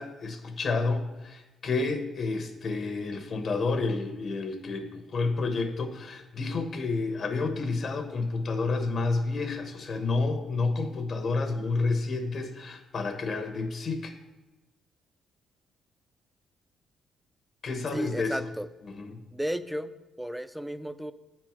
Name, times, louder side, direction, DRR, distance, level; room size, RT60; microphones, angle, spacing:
voice 1, 0.0-14.1 17.6-18.5 19.0-19.2, left 3 dB, 50° left, 7 dB, 1.1 m, -30 dB
voice 2, 17.9-18.7 19.3-21.1, equal, 5° right, 13 dB, 0.4 m, -33 dB
8.5 x 4.5 x 5.9 m, 1.1 s
cardioid pair, 90°, 0 cm